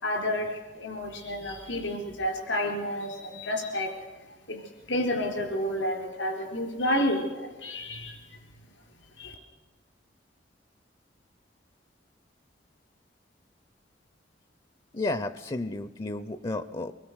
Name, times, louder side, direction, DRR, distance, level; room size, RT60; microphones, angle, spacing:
voice 1, 0.0-3.9 4.5-4.6 4.9-8.2 9.2-9.3, left 1 dB, 85° left, 3 dB, 4.0 m, -30 dB
voice 2, 14.9-16.9, left 2 dB, 25° left, 13 dB, 0.6 m, -32 dB
24.5 x 20.0 x 6.3 m, 1.3 s
head